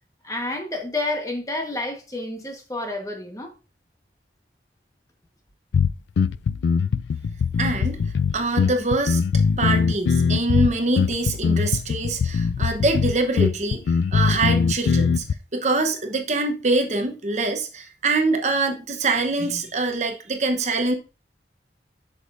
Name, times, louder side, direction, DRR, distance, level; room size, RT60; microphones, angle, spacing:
voice 1, 0.2-3.5, left 2 dB, 20° left, 1.2 m, -29 dB
sound 1, 5.7-15.3, left 5 dB, 85° left, 0.3 m, -21 dB
voice 2, 7.6-8.0 8.3-9.2 9.6-13.8 14.1-15.2 15.5-20.9, right 3 dB, 40° right, 0.9 m, -24 dB
8.1 x 6.4 x 2.5 m
head